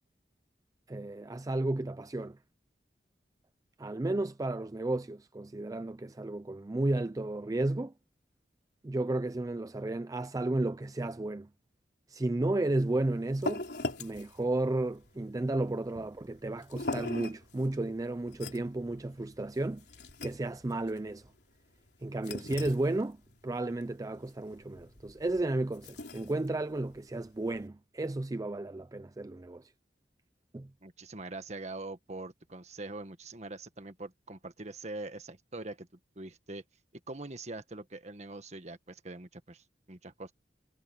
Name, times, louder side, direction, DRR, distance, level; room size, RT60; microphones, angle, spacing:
voice 1, 0.9-2.4 3.8-7.9 8.8-11.5 12.1-13.6 14.0-19.8 20.2-21.3 22.0-29.7 30.5-30.7, right 2 dB, 20° right, 0.4 m, -33 dB
sound 1, 12.7-27.7, left 2 dB, 70° left, 4.0 m, -43 dB
voice 2, 30.8-35.9 36.1-36.6 37.1-40.3, right 2 dB, 40° right, 1.6 m, -43 dB
head